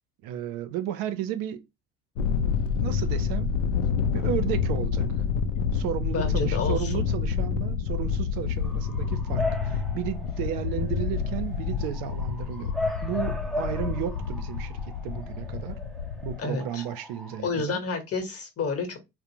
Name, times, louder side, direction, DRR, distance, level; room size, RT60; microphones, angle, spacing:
voice 1, 0.2-1.6 2.8-3.5 4.1-5.2 5.7-12.7 13.0-15.8 16.2-17.8, right 11 dB, 65° right, 0.5 m, -33 dB
Thunder, 2.2-16.4, left 6 dB, 85° left, 0.5 m, -28 dB
voice 2, 6.1-7.0 16.4-16.8 17.4-19.0, left 4 dB, 40° left, 1.0 m, -30 dB
Bark / Motor vehicle (road) / Siren, 8.6-17.4, left 2 dB, ahead, 0.5 m, -37 dB
2.4 x 2.0 x 2.8 m
hypercardioid pair, 70°, 37 cm